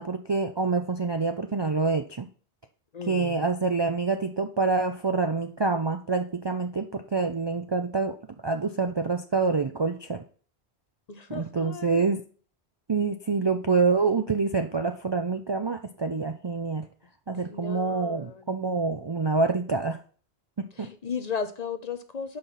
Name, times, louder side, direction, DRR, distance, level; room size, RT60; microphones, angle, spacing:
voice 1, 0.0-2.3 3.1-8.2 8.4-10.2 11.3-12.2 12.9-16.8 17.3-20.0 20.6-20.9, right 4 dB, 40° right, 5 dB, 0.4 m, -26 dB
voice 2, 2.9-3.4 11.1-12.1 17.5-18.5 20.8-22.4, left 6 dB, 45° left, 9 dB, 0.7 m, -35 dB
6.7 x 5.3 x 5.8 m, 0.42 s
omnidirectional pair, 1.1 m